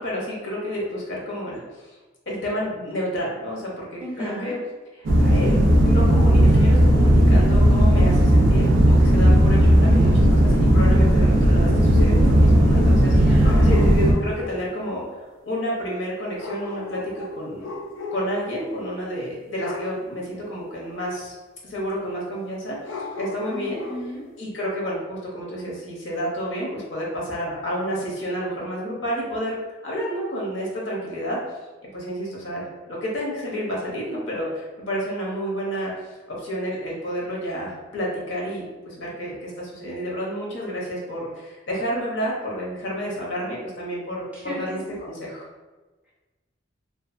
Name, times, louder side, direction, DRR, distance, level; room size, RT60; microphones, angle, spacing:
voice 1, 0.0-2.0 2.3-4.6 4.9-13.3 13.6-15.2 15.4-17.7 18.1-21.3 21.6-23.8 24.4-31.4 31.9-35.9 36.3-45.5, equal, 65° left, -4 dB, 0.8 m, -30 dB
voice 2, 4.0-4.5 13.2-13.8 23.5-24.2 44.3-45.0, equal, 5° right, -7 dB, 0.6 m, -34 dB
sound 1, 5.0-14.1, equal, 65° right, 0.4 m, -16 dB
sound 2, 11.6-13.1 13.4-14.6 16.4-18.4 18.7-19.0 19.6-20.0 22.9-24.2, left 3 dB, 85° left, 0.3 m, -35 dB
2.6 x 2.4 x 2.4 m, 1.2 s
head